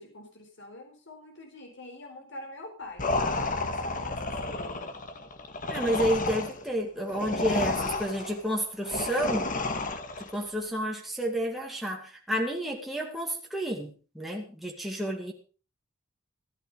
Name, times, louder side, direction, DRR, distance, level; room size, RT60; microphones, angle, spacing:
voice 1, 0.0-4.9 7.5-8.4, left 1 dB, 65° left, 3 dB, 4.3 m, -45 dB
sound 1, 3.0-10.4, left 2 dB, 40° left, 1.9 m, -31 dB
voice 2, 5.7-9.5 10.2-15.3, right 1 dB, ahead, 0 dB, 2.4 m, -30 dB
14.5 x 12.5 x 5.2 m, 0.36 s
head